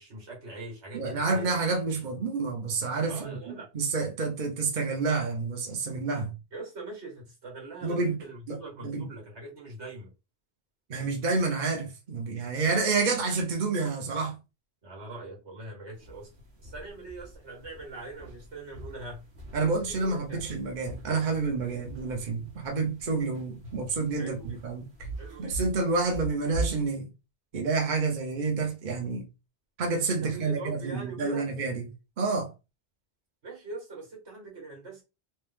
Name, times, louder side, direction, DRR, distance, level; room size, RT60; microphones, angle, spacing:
voice 1, 0.0-1.6 3.1-3.7 6.5-10.1 14.8-16.3 16.6-19.2 19.9-20.4 24.1-24.6 25.2-25.6 30.2-31.5 33.4-35.0, right 2 dB, 90° right, 2.0 m, -42 dB
voice 2, 0.9-6.3 7.8-8.1 8.5-9.1 10.9-14.3 19.5-24.8 25.4-27.1 27.5-29.2 29.8-31.8 32.2-32.5, right 4 dB, 45° right, 1.0 m, -29 dB
sound 1, 15.9-26.9, right 2 dB, 70° right, 1.4 m, -42 dB
3.3 x 3.0 x 3.5 m
omnidirectional pair, 1.1 m